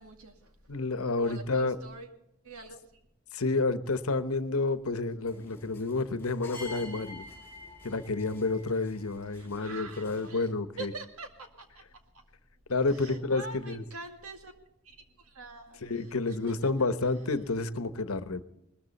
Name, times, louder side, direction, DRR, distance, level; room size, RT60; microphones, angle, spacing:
voice 1, 0.0-0.6 1.2-2.1 2.4-3.0 9.4-10.5 10.8-11.8 12.1-12.2 12.9-14.5 14.8-16.7, right 3 dB, 90° right, 5 dB, 2.2 m, -45 dB
voice 2, 0.7-1.8 3.3-7.2 7.8-10.9 12.7-13.8 15.8-18.5, left 3 dB, 85° left, 12 dB, 1.0 m, -30 dB
sound 1, 5.3-10.5, left 2 dB, 10° left, 3.9 m, -48 dB
20.0 x 13.5 x 4.2 m, 0.84 s
head